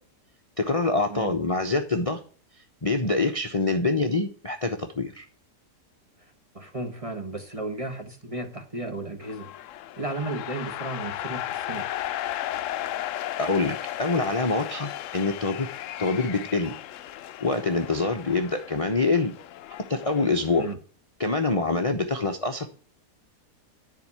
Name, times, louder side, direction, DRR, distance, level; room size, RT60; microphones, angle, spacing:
voice 1, 0.6-2.2 2.8-5.3 13.4-15.7 16.0-16.7 17.4-19.3 19.9-20.6 21.2-22.7, left 3 dB, 25° left, 0.8 m, -25 dB
voice 2, 1.1-1.4 6.2-9.5 10.0-11.9 20.6-20.8, right 2 dB, 20° right, 1.3 m, -34 dB
sound 1, 9.2-20.7, left 13 dB, 75° left, 0.7 m, -35 dB
10.5 x 4.9 x 6.1 m
omnidirectional pair, 1.8 m